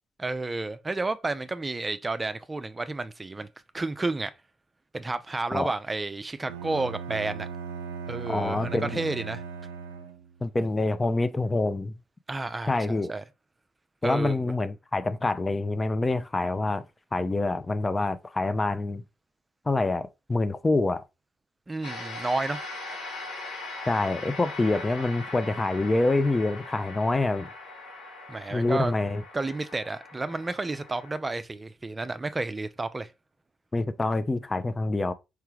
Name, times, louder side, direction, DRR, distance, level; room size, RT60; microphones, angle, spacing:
voice 1, 0.2-3.5 3.7-4.3 4.9-7.5 8.1-9.4 12.3-13.2 14.0-14.5 21.7-22.6 28.3-28.9 29.3-33.1, right 3 dB, 25° right, 0.5 m, -31 dB
Bowed string instrument, 6.5-10.4, right 6 dB, 80° right, 0.5 m, -38 dB
voice 2, 8.3-9.0 10.4-11.9 12.7-13.1 14.0-16.8 17.1-19.0 19.7-21.0 23.9-27.5 28.5-29.2 33.7-35.1, left 2 dB, 25° left, 0.6 m, -26 dB
sound 1, 21.8-31.1, left 3 dB, 75° left, 2.8 m, -40 dB
4.8 x 3.3 x 3.2 m
figure-of-eight pair, 40°, 0 cm